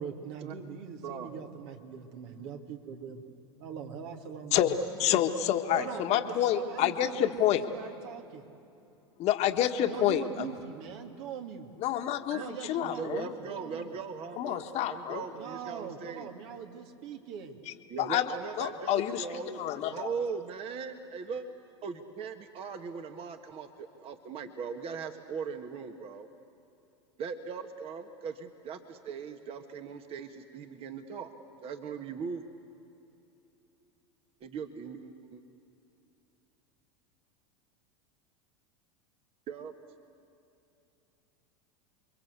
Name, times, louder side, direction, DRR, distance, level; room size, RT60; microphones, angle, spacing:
voice 1, 0.0-3.2 3.6-4.8 5.7-8.6 9.8-11.8 12.3-13.9 15.3-17.6, right 7 dB, 65° right, 4 dB, 2.6 m, -42 dB
voice 2, 5.0-7.6 9.2-10.5 11.8-13.3 14.4-15.2 18.0-18.2 18.6-20.1, left 11 dB, 50° left, 6 dB, 1.6 m, -28 dB
voice 3, 12.8-16.3 17.9-19.6 19.9-21.5 21.8-26.3 27.2-31.3 31.6-32.4 34.4-35.4 39.5-39.7, right 6 dB, 40° right, 6 dB, 1.7 m, -39 dB
28.5 x 23.0 x 8.2 m, 2.8 s
hypercardioid pair, 95°, 15 cm